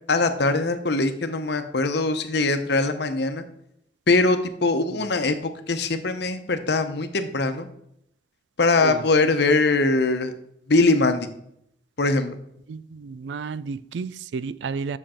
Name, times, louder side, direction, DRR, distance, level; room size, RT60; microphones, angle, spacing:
voice 1, 0.1-3.4 4.1-5.4 5.7-7.7 8.6-10.3 10.7-11.3 12.0-12.4, left 3 dB, 65° left, 0.9 m, -22 dB
voice 2, 12.7-15.0, right 5 dB, 75° right, 0.4 m, -32 dB
7.7 x 6.6 x 4.3 m
head